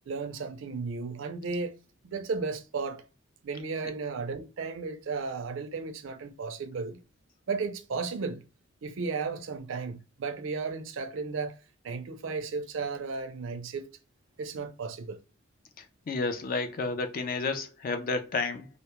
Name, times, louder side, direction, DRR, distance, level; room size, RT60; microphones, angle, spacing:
voice 1, 0.1-1.8 2.0-3.0 3.4-7.0 7.5-8.4 8.8-11.6 11.8-13.9 14.4-15.2, right 4 dB, 70° right, 0.4 m, -34 dB
voice 2, 15.8-18.7, left 3 dB, 45° left, 0.4 m, -31 dB
2.2 x 2.0 x 2.9 m
head